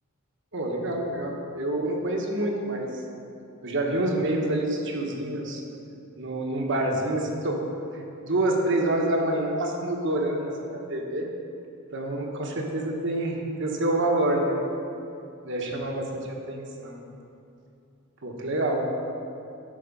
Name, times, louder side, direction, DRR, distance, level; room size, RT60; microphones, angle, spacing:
voice 1, 0.5-3.0 3.6-5.6 6.2-11.3 11.9-14.6 15.4-17.0 18.2-18.9, right 1 dB, 60° right, 1 dB, 1.2 m, -27 dB
11.5 x 4.7 x 5.4 m, 2.7 s
head